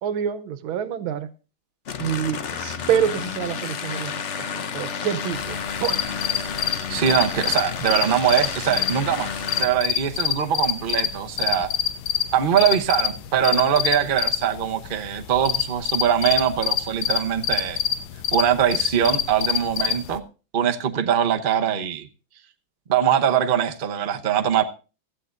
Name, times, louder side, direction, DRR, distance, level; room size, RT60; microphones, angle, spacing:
voice 1, 0.0-1.3 2.0-6.0, right 9 dB, 85° right, 1.7 m, -27 dB
sound 1, 1.9-9.6, left 6 dB, 55° left, 0.8 m, -31 dB
sound 2, 5.3-20.2, left 10 dB, 85° left, 1.7 m, -27 dB
voice 2, 6.9-9.3 9.6-11.7 12.3-17.8 18.3-20.2 20.5-22.1 22.9-24.6, right 9 dB, 40° right, 0.7 m, -22 dB
17.0 x 13.0 x 2.6 m
omnidirectional pair, 2.2 m